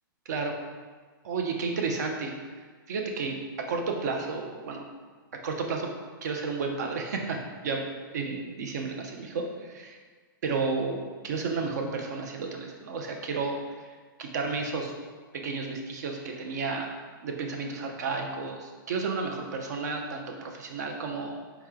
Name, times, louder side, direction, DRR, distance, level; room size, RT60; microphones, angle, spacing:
voice 1, 0.3-0.6 1.2-2.3 2.9-4.8 5.4-5.9 6.2-7.8 8.1-10.0 10.4-13.8 14.2-14.9 15.4-16.9 17.2-21.4, right 4 dB, 50° right, 3 dB, 0.6 m, -32 dB
4.5 x 3.0 x 3.6 m, 1.5 s
hypercardioid pair, 175°, 12 cm